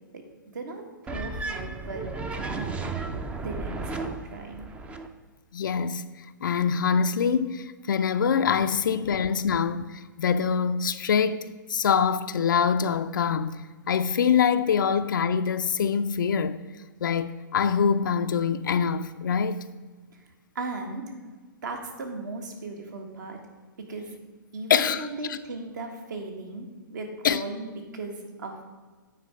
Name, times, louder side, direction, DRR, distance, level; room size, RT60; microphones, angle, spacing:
voice 1, 0.5-2.9 3.3-4.7 20.1-20.2 20.5-21.1 21.6-23.4 23.8-24.2 24.5-28.6, right 3 dB, 60° right, 1.6 m, -37 dB
sound 1, 1.1-5.1, right 3 dB, 10° right, 0.4 m, -34 dB
voice 2, 5.5-6.0 6.4-16.6 17.0-19.6 24.7-25.4 27.2-27.4, left 6 dB, 65° left, 0.4 m, -24 dB
9.0 x 4.6 x 5.1 m
hypercardioid pair, 125°, 11 cm